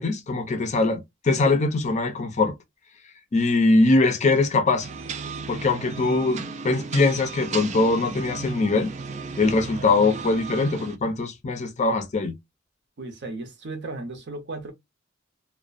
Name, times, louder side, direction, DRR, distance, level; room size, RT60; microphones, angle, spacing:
voice 1, 0.0-2.5 3.3-4.9 5.5-8.9 9.4-12.3, left 3 dB, 35° left, 0.5 m, -22 dB
sound 1, 4.8-11.0, right 4 dB, 35° right, 0.3 m, -35 dB
voice 2, 13.0-14.7, right 2 dB, 60° right, 0.7 m, -35 dB
2.4 x 2.1 x 2.4 m
head